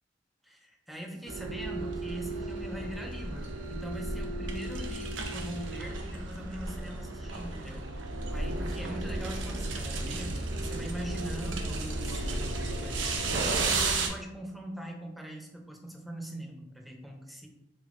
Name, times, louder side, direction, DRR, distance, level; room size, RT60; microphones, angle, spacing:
voice 1, 0.4-8.0 8.3-17.5, equal, ahead, 0 dB, 0.4 m, -42 dB
sound 1, 1.3-14.1, right 2 dB, 80° right, 0.5 m, -33 dB
3.4 x 3.3 x 2.4 m, 0.96 s
head